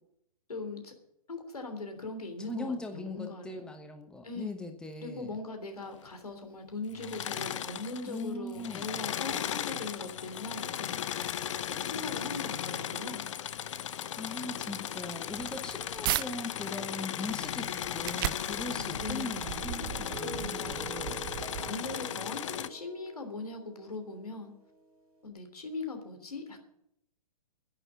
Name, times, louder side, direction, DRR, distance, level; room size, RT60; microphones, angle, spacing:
voice 1, 0.5-0.9 1.3-3.6 4.2-4.6 5.0-11.0 11.8-13.3 19.0-19.5 20.2-21.1 21.6-24.5 25.2-26.6, left 3 dB, 80° left, 6 dB, 3.3 m, -40 dB
voice 2, 2.5-5.3 8.0-8.9 14.2-21.2, left 2 dB, 5° left, 5 dB, 1.2 m, -40 dB
Engine / Mechanisms, 6.9-8.3 8.5-22.7, left 10 dB, 55° left, 0.7 m, -36 dB
sound 1, 15.2-16.3 16.8-22.1, right 16 dB, 35° right, 0.5 m, -38 dB
Guitar, 18.7-25.3, right 4 dB, 80° right, 3.7 m, -47 dB
11.0 x 9.8 x 9.9 m, 0.78 s
figure-of-eight pair, 115°, 19 cm